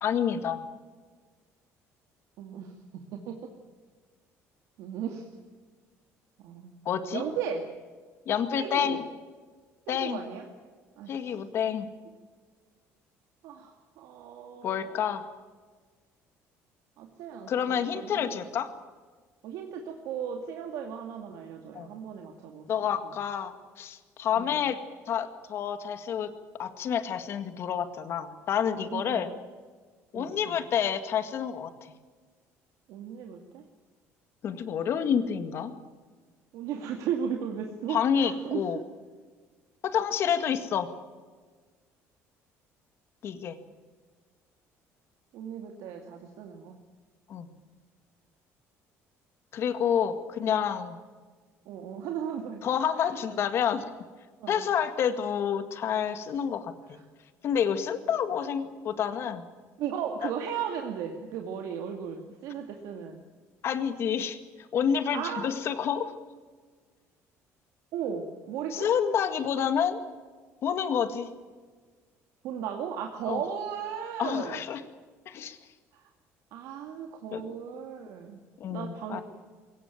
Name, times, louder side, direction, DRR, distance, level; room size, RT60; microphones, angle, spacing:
voice 1, 0.0-0.7 6.9-7.2 8.3-9.0 9.9-10.2 11.1-11.9 14.6-15.2 17.5-18.7 21.7-21.9 22.7-24.8 25.1-26.3 26.6-29.3 30.1-31.7 34.4-35.7 37.9-38.8 39.8-40.9 43.2-43.6 47.3-47.5 49.5-51.0 52.6-53.8 54.5-57.0 57.4-59.4 60.2-60.3 63.6-64.4 64.7-66.1 68.7-70.0 70.6-71.3 73.3-73.4 74.2-74.8 75.3-75.6 77.3-77.4 78.6-79.2, left 8 dB, 50° left, 10 dB, 2.0 m, -28 dB
voice 2, 2.4-3.4 4.8-5.3 6.4-6.8 7.1-7.6 8.5-9.0 9.9-10.4 11.0-11.2 13.4-15.0 17.0-18.4 19.4-22.7 24.3-24.5 28.9-29.3 30.1-30.6 32.9-33.6 36.5-38.8 45.3-46.8 51.7-52.6 53.0-53.1 54.4-54.7 56.9-57.0 59.8-63.2 65.1-65.5 67.9-68.9 72.4-74.6 75.9-76.1 76.5-78.4 78.7-79.2, right 8 dB, 75° right, 3 dB, 2.3 m, -36 dB
22.0 x 18.0 x 9.1 m, 1.5 s
cardioid pair, 150°, 6 cm